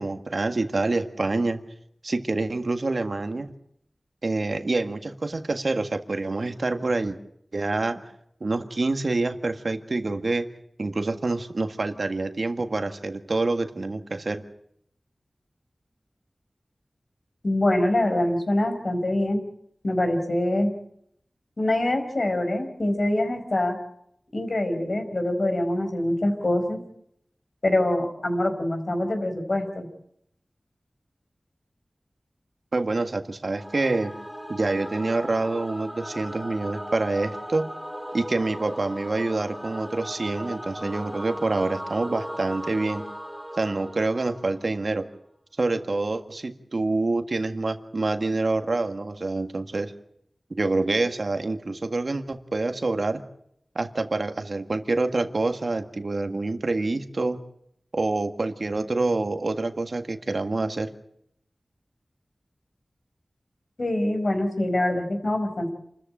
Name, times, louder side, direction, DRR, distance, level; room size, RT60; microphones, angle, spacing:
voice 1, 0.0-1.6 2.0-3.5 4.2-7.2 7.5-8.0 8.4-10.5 10.8-14.4 32.7-34.1 34.5-37.7 38.1-43.0 43.6-45.1 45.6-49.9 50.5-53.2 53.7-57.4 57.9-60.9, right 2 dB, 65° right, 8 dB, 1.7 m, -26 dB
voice 2, 17.4-19.4 19.8-20.7 21.6-23.8 24.3-26.8 27.6-29.9 63.8-65.7, left 1 dB, 60° left, 5 dB, 5.0 m, -24 dB
Singing / Musical instrument, 33.5-44.8, equal, ahead, 4.6 m, -37 dB
28.0 x 14.0 x 8.9 m, 0.73 s
wide cardioid pair, 60°, 0 cm